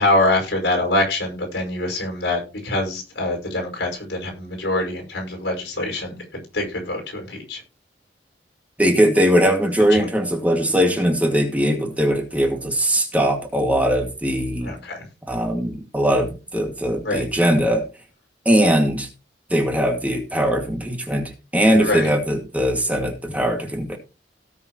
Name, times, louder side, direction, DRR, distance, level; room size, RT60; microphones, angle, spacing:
voice 1, 0.0-7.6 14.6-15.0 17.0-17.3 21.8-22.1, left 2 dB, 90° left, 2 dB, 5.3 m, -24 dB
voice 2, 8.8-14.7 15.3-17.8 18.5-19.1 19.5-24.0, equal, 10° right, 2 dB, 2.2 m, -20 dB
17.5 x 7.0 x 3.0 m, 0.31 s
head